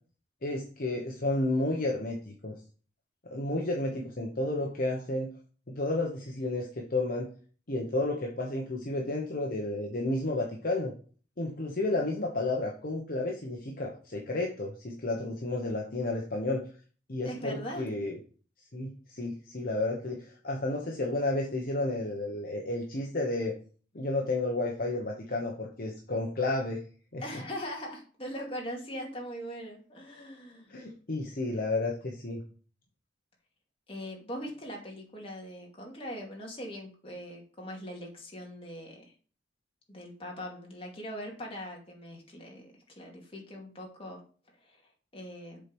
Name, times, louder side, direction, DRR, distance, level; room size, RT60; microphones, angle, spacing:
voice 1, 0.4-2.5 3.2-5.3 5.7-7.3 7.7-10.9 11.4-16.6 17.1-18.2 18.7-23.5 23.9-26.8 27.1-27.2 30.7-32.4, left 2 dB, 50° left, 0 dB, 1.1 m, -31 dB
voice 2, 17.2-17.9 27.2-30.8 33.9-39.0 39.9-44.2 44.6-44.8 45.1-45.6, equal, 30° left, -1 dB, 2.4 m, -41 dB
7.4 x 4.5 x 5.4 m, 0.40 s
head